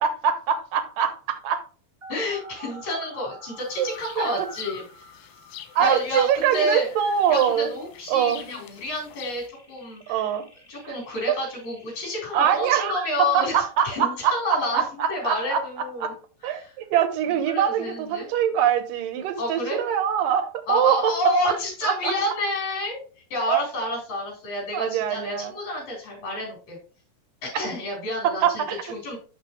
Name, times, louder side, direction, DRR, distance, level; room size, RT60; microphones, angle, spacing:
voice 1, 0.0-1.6 3.8-4.5 5.8-7.7 8.1-8.4 10.1-10.4 10.9-11.0 11.3-11.4 12.3-16.2 16.4-21.2 21.4-21.5 21.8-22.1 23.5-23.6 24.7-25.5 28.2-28.8, right 9 dB, 75° right, 2.6 m, -24 dB
sound 1, 2.0-12.0, equal, 5° right, 2.7 m, -48 dB
voice 2, 2.1-4.8 5.8-6.9 7.3-10.3 10.7-16.1 16.4-16.7 17.5-18.3 19.4-19.8 20.7-23.0 23.3-26.8 27.4-29.2, left 1 dB, 55° left, 5.3 m, -29 dB
sound 2, 3.6-9.5, left 9 dB, 85° left, 2.7 m, -44 dB
11.5 x 4.3 x 3.0 m
omnidirectional pair, 4.0 m